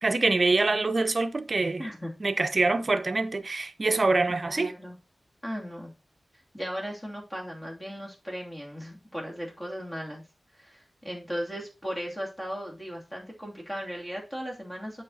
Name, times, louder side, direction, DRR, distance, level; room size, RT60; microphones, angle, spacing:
voice 1, 0.0-1.8 2.2-4.7, right 3 dB, 40° right, 0.8 m, -25 dB
voice 2, 1.8-2.1 4.4-5.0 5.4-5.9 6.5-10.2 10.5-15.0, equal, 15° left, 2.7 m, -37 dB
7.6 x 5.8 x 4.1 m
wide cardioid pair, 115°, 0 cm